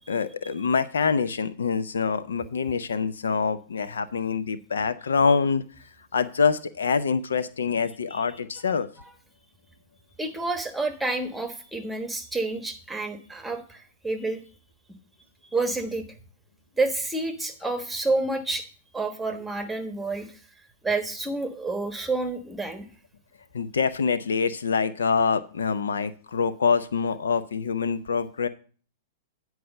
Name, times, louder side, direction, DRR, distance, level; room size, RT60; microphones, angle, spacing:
voice 1, 0.1-5.6 6.1-8.9 23.5-28.5, left 5 dB, 75° left, 13 dB, 0.5 m, -25 dB
voice 2, 10.2-14.4 15.5-16.0 16.7-18.6 18.9-20.4 20.8-22.8, right 2 dB, 5° right, 7 dB, 1.3 m, -29 dB
9.4 x 4.7 x 6.4 m, 0.40 s
figure-of-eight pair, 105°, 0 cm